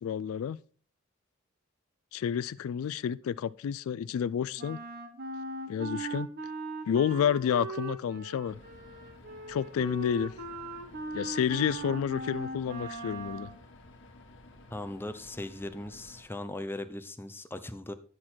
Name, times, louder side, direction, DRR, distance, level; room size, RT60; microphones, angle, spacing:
voice 1, 0.0-0.6 2.1-4.8 5.7-6.3 6.9-8.6 9.5-10.3 11.1-13.5, left 8 dB, 80° left, 0.3 m, -30 dB
Wind instrument woodwind instrument, 4.6-13.6, right 3 dB, 50° right, 1.2 m, -39 dB
sound 1, 8.4-16.2, left 2 dB, 60° left, 1.2 m, -53 dB
voice 2, 14.7-17.9, left 1 dB, 10° left, 0.6 m, -39 dB
9.8 x 6.1 x 4.3 m
head